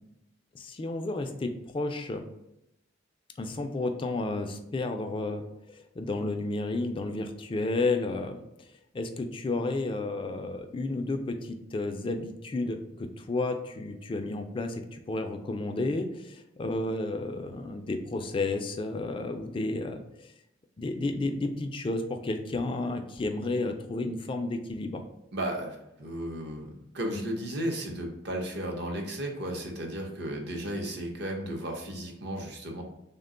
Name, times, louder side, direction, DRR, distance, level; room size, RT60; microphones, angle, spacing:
voice 1, 0.5-2.2 3.4-20.3 20.8-25.1, left 2 dB, 25° left, 6 dB, 0.3 m, -32 dB
voice 2, 25.3-32.8, right 1 dB, 60° right, 2 dB, 0.7 m, -34 dB
3.4 x 2.2 x 3.7 m, 0.85 s
head